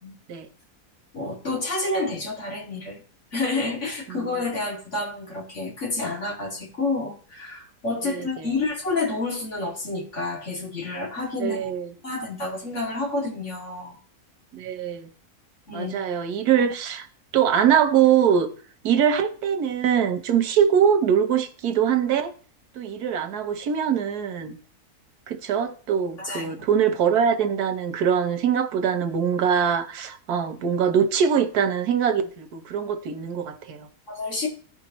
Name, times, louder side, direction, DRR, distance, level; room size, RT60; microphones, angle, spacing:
voice 1, 1.1-3.0 3.3-11.7 12.0-14.0 15.7-15.9 26.2-26.5 34.1-34.5, left 3 dB, 50° left, 2.7 m, -29 dB
voice 2, 8.0-8.5 11.4-11.9 14.5-15.1 15.7-17.1 17.3-18.5 18.8-22.3 22.8-24.6 25.3-33.9, right 8 dB, 85° right, 1.4 m, -23 dB
15.0 x 5.2 x 3.0 m
omnidirectional pair, 1.6 m